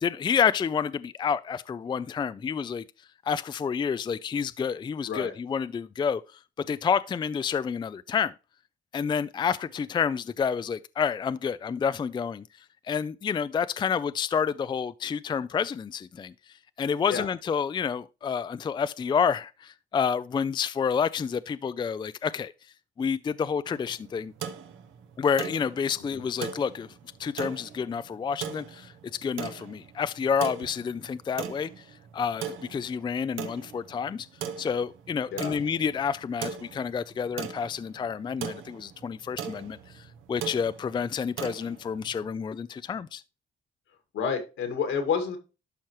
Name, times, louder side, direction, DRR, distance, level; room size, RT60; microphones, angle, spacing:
voice 1, 0.0-2.8 3.3-8.3 8.9-12.5 12.8-16.3 16.8-22.5 23.0-24.3 25.2-26.9 27.2-31.9 32.1-34.3 34.6-43.2, left 6 dB, 25° left, 0.3 m, -29 dB
sound 1, 23.6-42.3, right 8 dB, 85° right, 1.0 m, -40 dB
voice 2, 44.1-45.4, left 6 dB, 80° left, 2.0 m, -29 dB
12.0 x 4.5 x 3.0 m
cardioid pair, 90°, 20 cm